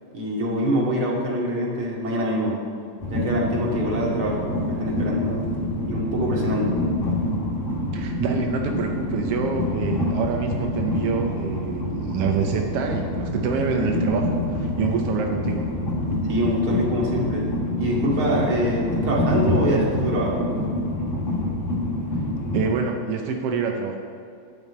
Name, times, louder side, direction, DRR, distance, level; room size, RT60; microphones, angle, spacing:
voice 1, 0.1-2.6 3.1-5.4 5.9-6.8 16.3-20.5, equal, 45° right, -4 dB, 2.9 m, -24 dB
Train, 3.0-22.7, left 1 dB, 40° left, 1.1 m, -26 dB
voice 2, 7.9-15.7 22.5-24.0, right 6 dB, 75° right, 2 dB, 1.4 m, -26 dB
11.0 x 5.4 x 8.5 m, 2.4 s
omnidirectional pair, 3.6 m